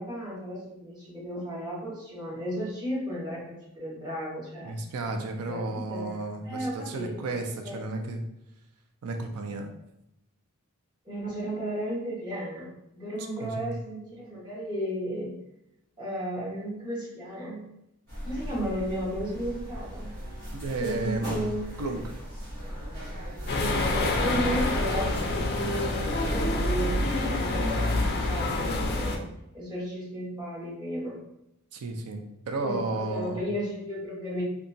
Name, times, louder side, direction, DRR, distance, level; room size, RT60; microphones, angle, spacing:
voice 1, 0.0-4.7 5.4-7.4 7.6-7.8 11.0-15.3 16.0-17.6 18.2-20.1 20.8-21.6 23.5-28.0 28.3-29.2 29.5-31.2 32.6-34.4, equal, 20° right, -8 dB, 1.1 m, -34 dB
voice 2, 4.6-8.2 9.0-9.7 13.4-13.7 20.5-21.5 21.8-22.1 31.7-33.4, right 2 dB, 85° right, 5 dB, 0.4 m, -33 dB
sound 1, 18.1-25.4, equal, 45° right, 1.1 m, -37 dB
sound 2, 23.5-29.2, left 2 dB, 45° left, 0.4 m, -27 dB
2.8 x 2.3 x 2.6 m, 0.82 s
head